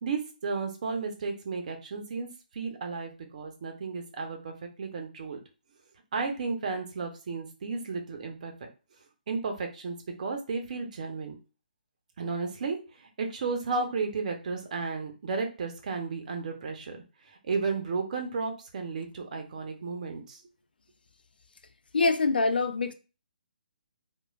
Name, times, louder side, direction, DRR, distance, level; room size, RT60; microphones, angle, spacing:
voice 1, 0.0-2.3 2.5-4.5 4.8-5.4 6.1-8.5 9.3-11.3 12.2-20.4, right 4 dB, 50° right, 0.8 m, -33 dB
voice 2, 21.9-22.9, left 3 dB, 75° left, 0.4 m, -24 dB
3.1 x 2.3 x 2.4 m
figure-of-eight pair, 140°, 5 cm